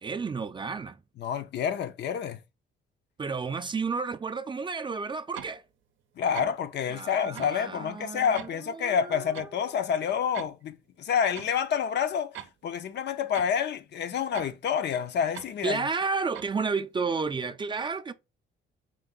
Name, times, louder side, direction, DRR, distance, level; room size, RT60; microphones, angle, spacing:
voice 1, 0.0-1.0 3.2-5.6 6.9-9.3 15.6-18.1, right 4 dB, 25° right, 0.4 m, -32 dB
voice 2, 1.2-2.4 6.2-15.9, left 7 dB, 60° left, 0.6 m, -28 dB
sound 1, 5.3-5.6 6.3-6.6 7.3-7.6 8.3-8.5 9.3-9.5 10.3-10.6 11.3-11.5 12.3-12.5 13.3-13.5 14.3-14.5 15.3-15.5 16.3-16.5, right 10 dB, 75° right, 0.6 m, -41 dB
4.4 x 2.6 x 3.7 m
cardioid pair, 90°, 20 cm